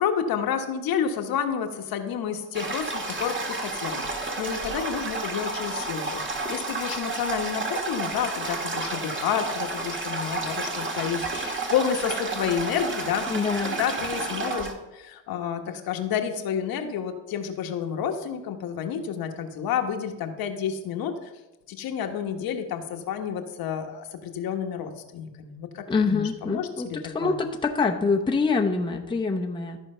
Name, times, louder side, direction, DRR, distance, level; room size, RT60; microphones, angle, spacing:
voice 1, 0.0-13.2 13.6-21.3 21.7-27.3, left 8 dB, 60° left, 5 dB, 1.3 m, -30 dB
Toilet flush, 2.5-14.7, right 3 dB, 30° right, 1.7 m, -31 dB
voice 2, 13.3-13.8 25.9-29.8, left 4 dB, 10° left, 2 dB, 0.9 m, -25 dB
13.5 x 4.5 x 5.5 m, 1.0 s
supercardioid pair, 95°, 41 cm